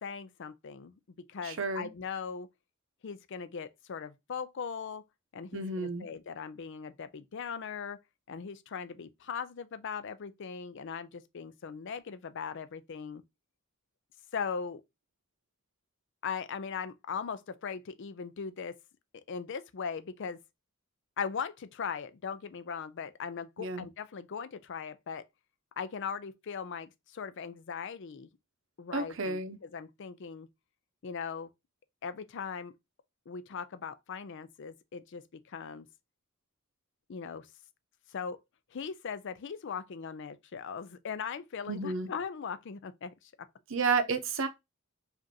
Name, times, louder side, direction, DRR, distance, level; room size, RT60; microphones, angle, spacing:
voice 1, 0.0-2.5 3.0-5.0 5.3-8.0 8.3-13.2 14.3-14.8 16.2-18.8 19.3-20.4 21.2-25.2 25.8-28.3 28.8-30.5 31.0-31.5 32.0-32.7 33.3-35.9 37.1-37.5 38.1-38.4 38.7-43.5, left 6 dB, 60° left, 0.5 m, -39 dB
voice 2, 1.4-1.9 5.5-6.1 23.6-23.9 28.9-29.6 41.7-42.1 43.7-44.5, right 4 dB, 65° right, 0.7 m, -31 dB
5.1 x 2.6 x 2.7 m
head